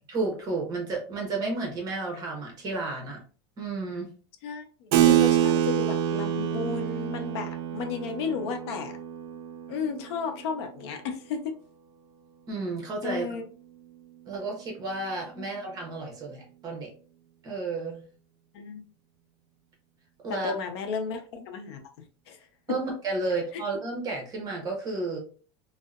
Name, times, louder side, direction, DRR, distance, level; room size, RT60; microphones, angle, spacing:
voice 1, 0.1-3.2 3.6-4.1 12.5-13.4 14.3-16.9 17.4-18.1 20.2-20.5 22.7-25.2, right 3 dB, 25° right, 1 dB, 0.8 m, -32 dB
voice 2, 4.4-9.0 9.7-11.5 13.0-13.4 15.4-15.5 18.5-18.8 20.3-21.8 22.3-22.5 23.5-23.6, left 5 dB, 75° left, 6 dB, 0.5 m, -33 dB
Keyboard (musical), 4.9-10.9, right 11 dB, 55° right, 0.4 m, -26 dB
2.6 x 2.0 x 2.3 m, 0.39 s
supercardioid pair, 160°, 14 cm